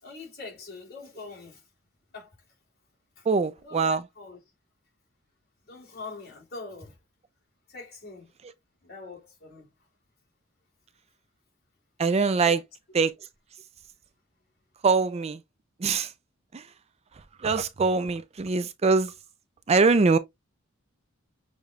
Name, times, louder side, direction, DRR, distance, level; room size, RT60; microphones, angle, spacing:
voice 1, 0.0-1.6 2.1-2.3 3.2-3.3 3.6-4.4 5.6-7.0 7.7-8.3 8.8-9.7 12.4-12.6, left 3 dB, 50° left, 3.4 m, -43 dB
voice 2, 3.3-4.0 12.0-12.6 12.9-13.1 14.8-15.4 15.8-16.1 17.4-19.1 19.7-20.2, right 4 dB, 30° right, 0.4 m, -22 dB
6.5 x 3.4 x 2.4 m
head